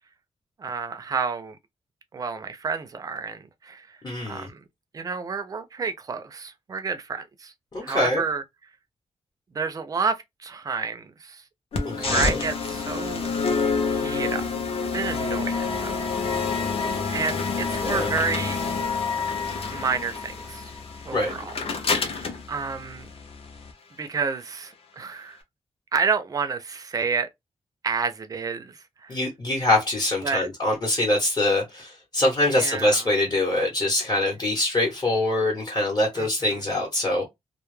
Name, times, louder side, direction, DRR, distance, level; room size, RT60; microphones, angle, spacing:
voice 1, 0.6-1.6 2.1-3.9 4.3-4.6 4.9-7.5 7.8-8.4 9.5-11.4 12.0-13.4 13.9-14.4 14.9-16.0 17.1-18.6 19.7-20.7 21.1-21.6 22.5-23.1 24.0-25.4 25.9-27.3 27.8-29.2 30.2-30.5 32.5-33.1 36.2-36.6, right 5 dB, 30° right, 0.4 m, -30 dB
voice 2, 4.0-4.5 7.7-8.2 11.8-12.4 17.8-18.1 21.1-21.3 29.1-37.3, left 1 dB, 35° left, 0.8 m, -24 dB
sound 1, 11.7-23.7, left 4 dB, 60° left, 0.6 m, -28 dB
2.2 x 2.0 x 3.0 m
wide cardioid pair, 160°, 11 cm